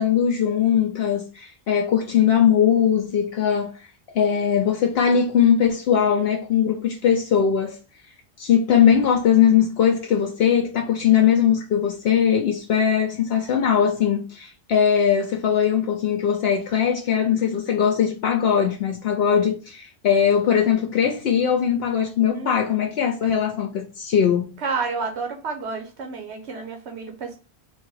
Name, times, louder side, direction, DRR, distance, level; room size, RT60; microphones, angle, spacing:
voice 1, 0.0-3.8 4.1-7.8 8.4-24.6, left 8 dB, 70° left, 0.9 m, -20 dB
voice 2, 22.3-22.8 24.6-27.4, right 4 dB, 90° right, 1.1 m, -30 dB
3.8 x 2.6 x 4.6 m
omnidirectional pair, 1.1 m